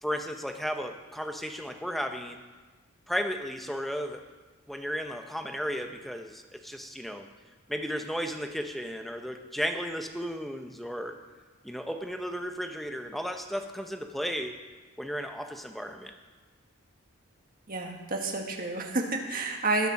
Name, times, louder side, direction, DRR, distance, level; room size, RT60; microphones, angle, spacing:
voice 1, 0.0-2.4 3.1-4.2 4.7-7.3 7.7-11.2 11.6-14.6 15.0-16.1, equal, ahead, 5 dB, 0.8 m, -34 dB
voice 2, 17.7-19.9, right 2 dB, 40° right, 2 dB, 1.7 m, -30 dB
20.0 x 6.8 x 5.9 m, 1.3 s
head